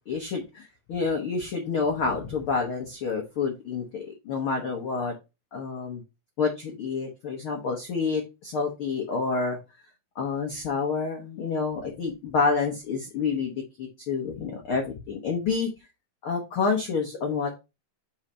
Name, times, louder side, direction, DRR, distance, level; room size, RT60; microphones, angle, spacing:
voice 1, 0.1-5.1 5.5-6.0 6.4-9.6 10.1-13.5 13.8-15.7 16.2-17.6, left 4 dB, 80° left, 0 dB, 1.2 m, -28 dB
4.8 x 4.4 x 5.0 m, 0.26 s
omnidirectional pair, 4.2 m